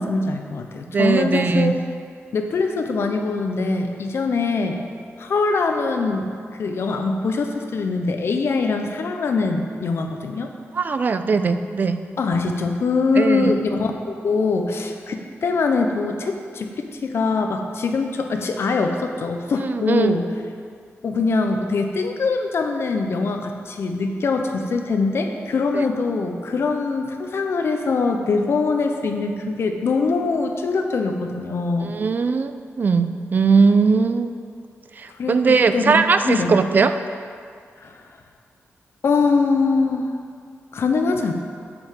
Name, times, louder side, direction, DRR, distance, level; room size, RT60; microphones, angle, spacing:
voice 1, 0.0-1.8 2.3-4.8 5.2-10.5 12.2-20.2 21.0-32.0 35.2-36.5 37.8-38.0 39.0-40.1 40.7-41.3, left 4 dB, 60° left, 5 dB, 0.8 m, -23 dB
voice 2, 0.9-1.8 10.7-12.0 13.2-13.5 19.6-20.1 25.7-25.8 31.8-34.3 35.0-36.9, right 4 dB, 40° right, 10 dB, 0.4 m, -19 dB
7.9 x 5.6 x 7.4 m, 2.2 s
wide cardioid pair, 175°, 5 cm